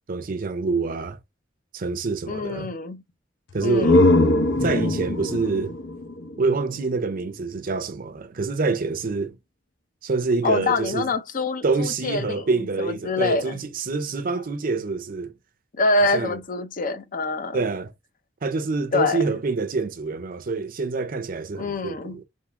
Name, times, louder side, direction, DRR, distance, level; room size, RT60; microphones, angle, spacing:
voice 1, 0.1-1.2 1.7-2.7 3.5-4.0 4.6-5.7 6.4-9.3 10.0-11.1 11.6-15.3 16.0-16.4 17.5-17.9 18.4-22.2, right 4 dB, 50° right, 0.6 m, -26 dB
voice 2, 2.3-3.0 3.6-4.0 10.4-12.4 12.8-13.6 15.8-17.6 18.9-19.2 21.6-22.2, left 3 dB, 45° left, 0.5 m, -25 dB
sound 1, 3.5-7.2, left 2 dB, 75° left, 0.9 m, -21 dB
3.9 x 3.6 x 2.9 m
head